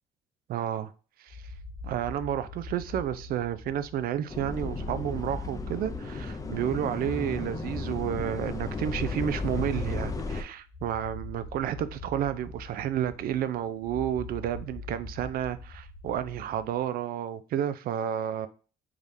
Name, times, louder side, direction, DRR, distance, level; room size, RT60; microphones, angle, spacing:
voice 1, 0.5-0.9 1.2-1.5 1.8-18.5, right 10 dB, 60° right, 0.4 m, -31 dB
sound 1, 1.3-16.8, left 2 dB, 55° left, 0.9 m, -44 dB
sound 2, 4.3-10.4, left 3 dB, 20° left, 0.5 m, -34 dB
3.6 x 3.3 x 2.6 m
cardioid pair, 110°, 17 cm